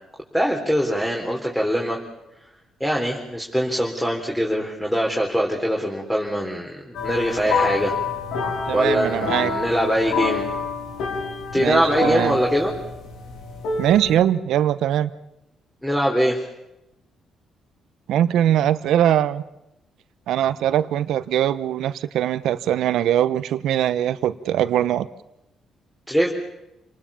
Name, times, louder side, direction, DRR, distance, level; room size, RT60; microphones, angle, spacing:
voice 1, 0.3-2.0 2.8-7.9 8.7-10.4 11.5-12.7 15.8-16.4 26.1-26.3, equal, 5° left, -1 dB, 4.0 m, -22 dB
sound 1, 6.9-14.2, left 4 dB, 85° left, 5.0 m, -27 dB
voice 2, 8.7-9.5 11.5-12.4 13.8-15.1 18.1-19.4 20.3-25.1, right 11 dB, 80° right, 14 dB, 1.0 m, -21 dB
28.5 x 19.5 x 7.2 m, 0.91 s
cardioid pair, 90°, 0 cm